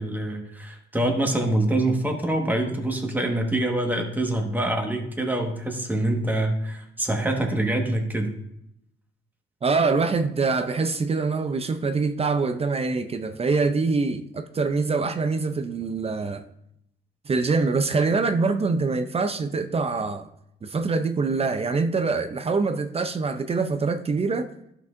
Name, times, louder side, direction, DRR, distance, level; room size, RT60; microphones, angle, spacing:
voice 1, 0.0-8.4, right 1 dB, 10° right, 1.4 m, -25 dB
voice 2, 9.6-16.4 17.3-20.3 20.6-24.5, right 4 dB, 30° right, 0.5 m, -24 dB
12.0 x 6.0 x 2.6 m
cardioid pair, 90°, 20 cm